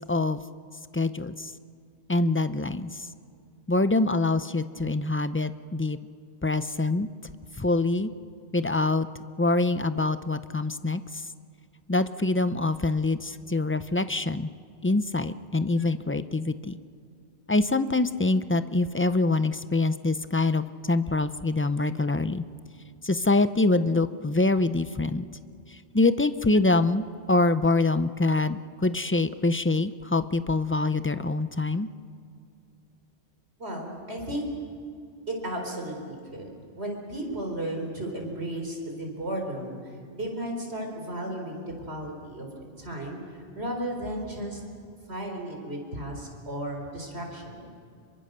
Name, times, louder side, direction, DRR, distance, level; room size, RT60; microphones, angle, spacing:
voice 1, 0.1-0.4 0.9-1.5 2.1-3.1 3.7-6.0 6.4-7.1 7.6-8.1 8.5-9.1 9.4-11.0 11.9-14.5 14.8-16.8 17.5-22.4 23.0-25.2 25.9-31.9, left 2 dB, 20° left, 12 dB, 0.3 m, -25 dB
voice 2, 33.6-34.5 35.3-36.5 36.8-42.5 42.8-44.6 45.1-47.7, right 1 dB, 65° right, 2 dB, 4.5 m, -34 dB
26.0 x 23.5 x 6.7 m, 2.3 s
omnidirectional pair, 1.1 m